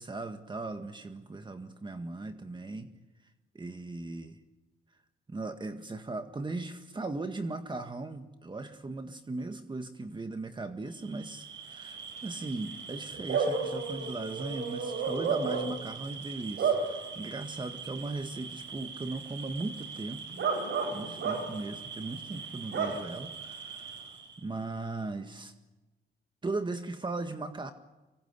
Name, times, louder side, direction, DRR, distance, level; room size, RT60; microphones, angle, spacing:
voice 1, 0.0-2.9 3.6-4.4 5.3-20.3 20.9-25.5 26.4-27.7, right 3 dB, 25° right, 7 dB, 1.8 m, -38 dB
Bark / Cricket, 11.1-24.4, right 5 dB, 65° right, 7.3 m, -35 dB
25.0 x 22.5 x 9.8 m, 1.1 s
cardioid pair, 90°, 20 cm